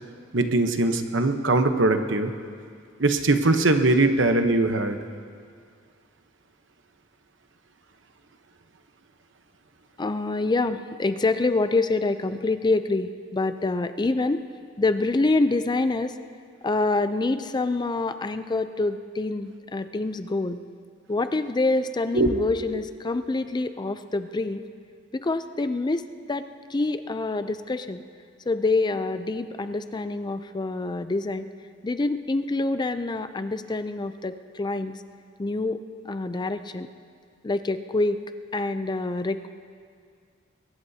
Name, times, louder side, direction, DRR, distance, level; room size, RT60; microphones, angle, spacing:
voice 1, 0.3-2.3 3.0-5.0 22.1-22.3, right 2 dB, 70° right, 7 dB, 1.0 m, -21 dB
voice 2, 10.0-14.4 14.8-16.1 16.6-20.6 21.1-24.6 25.1-28.0 28.5-31.5 31.8-35.0 35.4-35.8 36.0-36.9 37.4-38.2 38.5-39.5, left 2 dB, 25° left, 10 dB, 0.4 m, -26 dB
22.5 x 19.5 x 2.8 m, 2.2 s
head